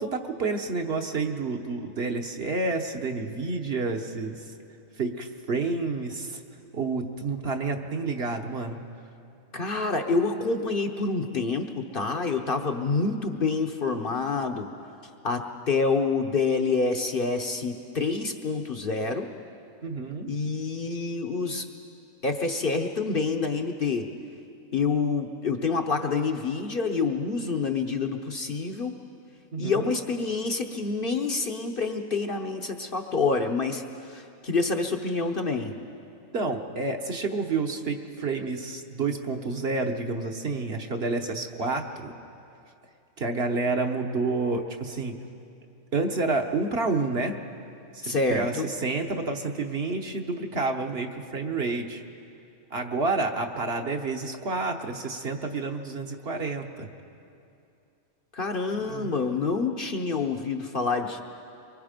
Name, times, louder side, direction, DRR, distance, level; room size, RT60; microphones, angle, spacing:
voice 1, 0.0-4.5 5.0-6.4 6.7-8.8 19.8-20.3 29.5-29.9 36.3-42.1 43.2-45.1 45.9-47.4 47.9-52.0 52.7-56.9 58.8-59.1, right 3 dB, 50° right, 4 dB, 1.3 m, -29 dB
voice 2, 9.5-14.7 15.2-19.3 20.3-21.7 22.2-24.1 24.7-28.9 29.6-35.7 48.0-48.7 58.3-61.2, left 4 dB, 45° left, 4 dB, 1.0 m, -27 dB
23.5 x 23.5 x 5.2 m, 2.6 s
omnidirectional pair, 1.4 m